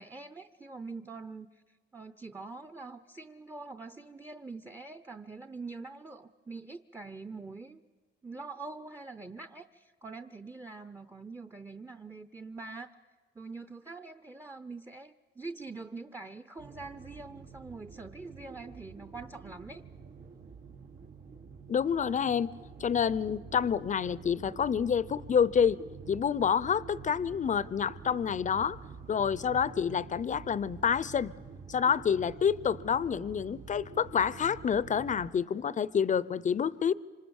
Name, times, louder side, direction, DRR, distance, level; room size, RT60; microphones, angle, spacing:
voice 1, 0.0-1.6 1.9-7.8 8.2-12.9 13.3-19.8, right 3 dB, 15° right, 0.8 m, -44 dB
sound 1, 16.6-35.3, right 5 dB, 85° right, 3.1 m, -48 dB
voice 2, 21.7-22.5 22.8-25.8 26.1-28.8 29.1-31.3 31.7-36.9, left 7 dB, 40° left, 0.7 m, -28 dB
26.5 x 25.5 x 7.2 m
cardioid pair, 90°, 20 cm